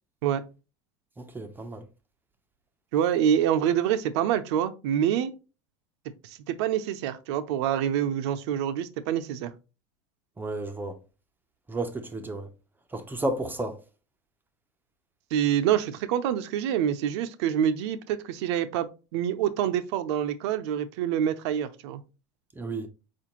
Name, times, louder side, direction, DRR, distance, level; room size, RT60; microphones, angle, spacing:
voice 1, 1.2-1.9 10.4-11.0 11.7-12.5 12.9-13.8 22.6-22.9, right 2 dB, 15° right, 0.5 m, -32 dB
voice 2, 2.9-5.3 6.2-9.5 15.3-18.9 19.1-22.0, right 10 dB, 75° right, 0.5 m, -26 dB
4.3 x 2.5 x 2.9 m
supercardioid pair, 115°, 14 cm